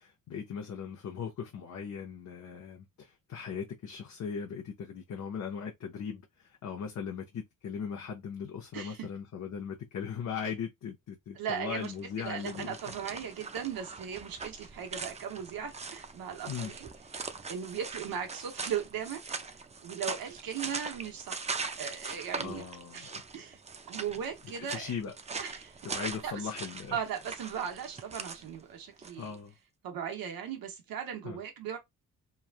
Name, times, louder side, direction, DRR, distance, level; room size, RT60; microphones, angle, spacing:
voice 1, 0.0-12.8 16.5-16.7 22.4-23.2 24.6-25.1 25.8-27.0 29.2-29.5 31.2-31.4, left 6 dB, 55° left, 0.7 m, -39 dB
voice 2, 8.7-9.1 11.3-11.9 12.2-16.9 17.5-19.5 19.8-22.6 22.9-23.6 23.9-24.9 25.4-25.8 26.2-26.3 26.9-29.3 29.8-31.8, right 8 dB, 90° right, 1.1 m, -38 dB
sound 1, 11.7-29.4, right 4 dB, 20° right, 0.4 m, -41 dB
3.1 x 2.3 x 2.4 m
cardioid pair, 90°, 34 cm